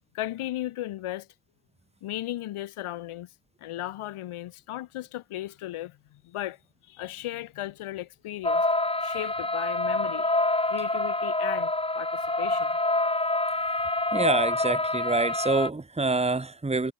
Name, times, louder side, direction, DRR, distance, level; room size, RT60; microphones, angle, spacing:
voice 1, 0.1-1.3 2.0-3.3 3.6-8.7 9.0-10.4 10.7-12.8, left 14 dB, 90° left, 4.6 m, -36 dB
sound 1, 8.4-15.7, left 2 dB, 10° left, 4.5 m, -26 dB
voice 2, 14.1-16.9, right 3 dB, 15° right, 2.1 m, -26 dB
cardioid pair, 120°, 49 cm